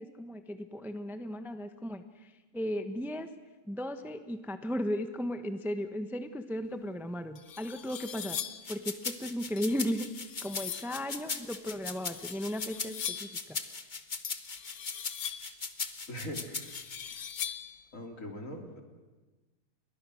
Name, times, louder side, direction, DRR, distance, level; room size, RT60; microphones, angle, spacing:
voice 1, 0.0-3.3 3.7-8.4 8.7-10.1 10.4-13.6, equal, ahead, 9 dB, 1.0 m, -36 dB
sound 1, 6.8-6.9 7.4-8.7 9.6-11.0 12.0-13.4 14.2-15.6 16.4-17.8, left 8 dB, 75° left, 1.5 m, -41 dB
sound 2, 8.6-17.0, left 4 dB, 35° left, 1.2 m, -39 dB
voice 2, 16.1-16.7 17.4-17.5 17.9-18.8, equal, 55° left, 3 dB, 3.7 m, -41 dB
30.0 x 22.5 x 6.5 m, 1.2 s
omnidirectional pair, 1.6 m